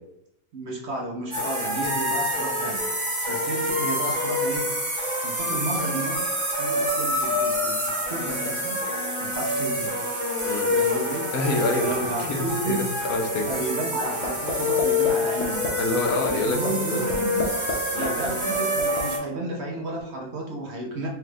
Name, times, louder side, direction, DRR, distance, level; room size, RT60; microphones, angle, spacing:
voice 1, 0.5-2.8 3.3-4.6 5.2-6.3 6.6-8.8 9.2-9.9 10.7-11.3 11.8-12.8 13.5-15.6 16.3-17.5 18.0-21.1, right 2 dB, 55° right, -1 dB, 1.0 m, -32 dB
sound 1, 1.3-19.2, left 1 dB, 25° right, 0.8 m, -27 dB
voice 2, 11.3-13.5 15.8-16.6 16.9-17.0 17.9-18.1, left 3 dB, 75° left, 1 dB, 1.2 m, -27 dB
sound 2, 14.2-14.5 14.8-15.1 15.4-15.7 16.1-16.3 16.6-16.7 17.1-17.7 18.0-19.0, left 4 dB, 55° left, 0.9 m, -29 dB
4.5 x 2.5 x 3.3 m, 0.79 s
omnidirectional pair, 1.6 m